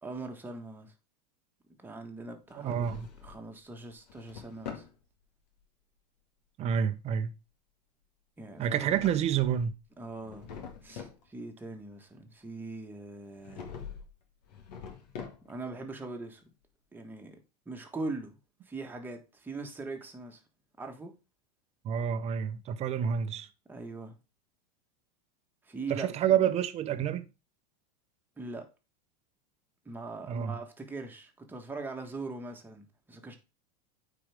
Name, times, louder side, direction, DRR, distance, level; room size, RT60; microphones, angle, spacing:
voice 1, 0.0-0.9 1.8-2.9 3.2-4.8 8.4-9.0 10.0-10.5 10.8-13.7 15.4-16.5 16.9-17.4 17.6-18.4 18.6-20.4 20.8-21.1 23.7-24.2 25.6-26.4 28.4-28.7 29.8-33.4, right 3 dB, 10° right, 1.5 m, -41 dB
Drawer open or close, 2.5-3.5 3.9-4.9 8.6-9.7 10.1-11.2 13.4-14.1 14.4-15.7, left 7 dB, 75° left, 2.0 m, -45 dB
voice 2, 2.6-3.1 6.6-7.3 8.6-9.7 21.8-23.5 25.9-27.3 30.3-30.6, right 8 dB, 30° right, 0.8 m, -28 dB
8.7 x 4.7 x 3.5 m
supercardioid pair, 130°, 21 cm